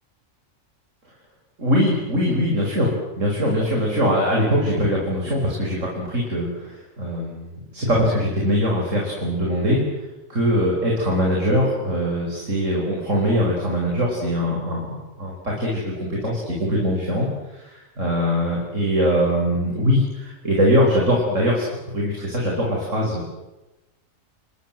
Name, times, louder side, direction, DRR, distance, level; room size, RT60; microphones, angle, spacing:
voice 1, 1.6-2.9 3.2-9.8 10.3-17.3 18.0-23.3, equal, 65° right, -2 dB, 6.0 m, -22 dB
30.0 x 22.0 x 7.7 m, 1.0 s
omnidirectional pair, 1.4 m